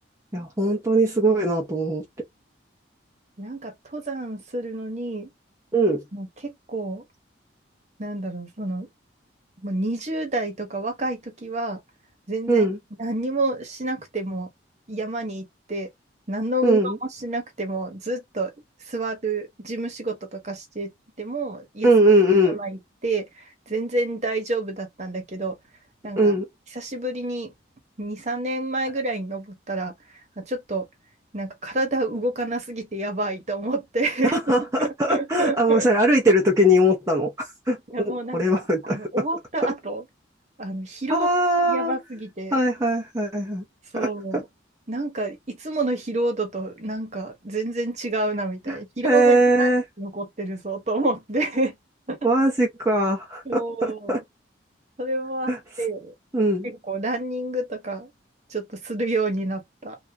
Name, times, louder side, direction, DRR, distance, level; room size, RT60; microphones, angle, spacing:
voice 1, 0.3-2.0 5.7-6.0 12.5-12.8 16.6-17.0 21.8-22.6 26.2-26.5 34.2-39.1 41.1-41.9 42.5-43.6 43.9-44.4 48.7-48.8 49.0-49.8 52.2-54.2 55.5-55.6 56.3-56.7, right 1 dB, 15° right, 0.7 m, -20 dB
voice 2, 3.4-5.3 6.1-7.0 8.0-8.9 9.6-11.8 12.3-12.7 13.0-14.5 14.9-15.9 16.3-18.5 18.8-20.9 21.2-21.9 22.4-25.6 26.0-26.3 26.7-27.5 28.0-29.9 30.4-30.9 31.3-34.4 34.8-35.9 37.9-40.0 40.6-41.3 41.6-42.6 43.9-44.4 44.9-51.8 52.1-52.3 53.4-54.2 55.0-55.5 55.8-56.1 56.6-58.1 58.5-60.0, right 2 dB, 35° right, 1.1 m, -29 dB
3.4 x 2.5 x 2.8 m
head